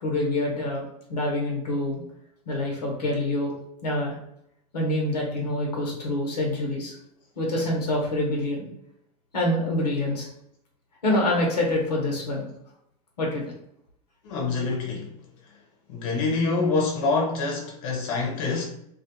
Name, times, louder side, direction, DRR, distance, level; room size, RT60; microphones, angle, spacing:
voice 1, 0.0-0.8 1.1-2.0 2.5-3.5 3.8-4.1 4.7-6.9 7.4-8.7 9.3-10.3 11.0-12.5 13.2-13.4, left 1 dB, 85° left, 0.9 m, -26 dB
voice 2, 14.2-15.1 15.9-18.6, left 3 dB, 60° left, 0.8 m, -26 dB
2.3 x 2.3 x 2.8 m
hypercardioid pair, 90°, 20 cm